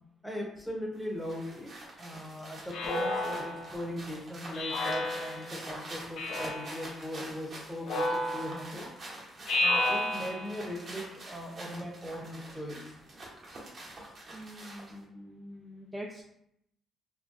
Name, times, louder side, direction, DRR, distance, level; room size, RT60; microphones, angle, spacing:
voice 1, 0.2-1.7 2.0-8.9 9.6-12.9 14.0-14.1, equal, 5° left, -1 dB, 0.8 m, -39 dB
sound 1, 0.9-15.0, right 1 dB, 50° right, 0.9 m, -46 dB
Speech synthesizer, 2.7-3.8 4.5-5.6 6.2-6.8 7.8-8.8 9.5-10.6, left 1 dB, 75° left, 0.5 m, -31 dB
voice 2, 14.3-16.2, equal, 15° right, -1 dB, 0.4 m, -44 dB
3.7 x 2.1 x 2.5 m, 0.76 s
cardioid pair, 90°, 0 cm